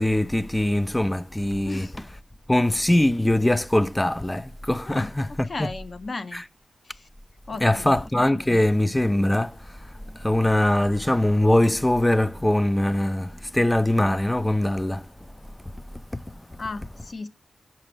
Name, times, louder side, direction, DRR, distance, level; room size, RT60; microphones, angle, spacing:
voice 1, 0.0-1.9 2.5-5.7 6.3-6.4 7.6-15.1 16.1-16.2 16.5-16.6, left 1 dB, 10° left, 0.3 m, -22 dB
voice 2, 4.9-6.4 6.8-7.1 7.5-8.0 16.6-17.3, left 3 dB, 50° left, 0.6 m, -35 dB
5.6 x 5.1 x 5.3 m
cardioid pair, 70°, 0 cm